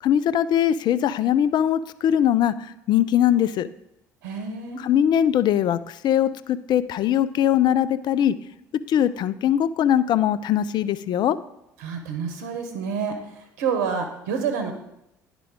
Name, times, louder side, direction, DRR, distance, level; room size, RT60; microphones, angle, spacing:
voice 1, 0.0-3.7 4.8-8.3 8.9-11.4, left 10 dB, 55° left, 15 dB, 0.4 m, -21 dB
voice 2, 4.2-4.8 11.8-14.7, right 6 dB, 80° right, 5 dB, 0.8 m, -28 dB
10.5 x 3.7 x 3.6 m, 0.83 s
hypercardioid pair, 60°, 9 cm